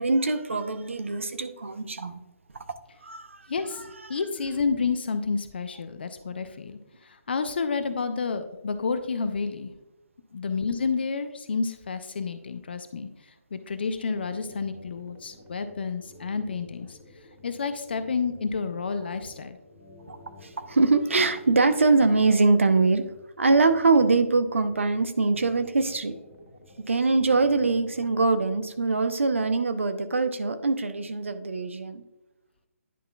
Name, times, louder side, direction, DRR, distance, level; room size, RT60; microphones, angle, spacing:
voice 1, 0.0-2.2 2.5-2.6 3.0-3.5 20.1-23.0 23.4-26.1 26.9-32.0, right 3 dB, 60° right, 9 dB, 0.7 m, -23 dB
voice 2, 3.5-9.7 10.3-13.1 13.5-17.0 17.4-19.6, left 5 dB, 45° left, 10 dB, 0.5 m, -30 dB
sound 1, 13.9-28.7, left 1 dB, 80° left, 1.7 m, -51 dB
10.0 x 5.5 x 2.3 m, 0.97 s
figure-of-eight pair, 140°, 8 cm